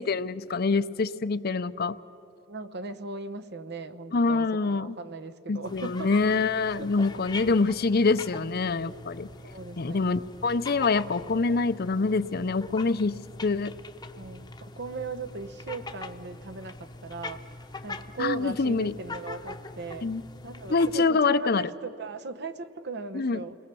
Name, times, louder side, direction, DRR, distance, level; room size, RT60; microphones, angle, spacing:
voice 1, 0.0-2.0 4.1-4.9 5.5-9.3 9.8-13.7 18.2-18.9 20.0-20.2 20.7-21.6 23.1-23.4, left 4 dB, 55° left, 14 dB, 0.6 m, -25 dB
voice 2, 2.5-6.1 6.8-6.9 8.1-8.6 9.4-10.1 14.1-17.4 17.8-20.1 20.4-23.6, right 3 dB, 60° right, 9 dB, 1.0 m, -38 dB
sound 1, 5.6-21.0, left 3 dB, 20° left, 0.9 m, -43 dB
29.5 x 20.5 x 6.9 m, 2.9 s
head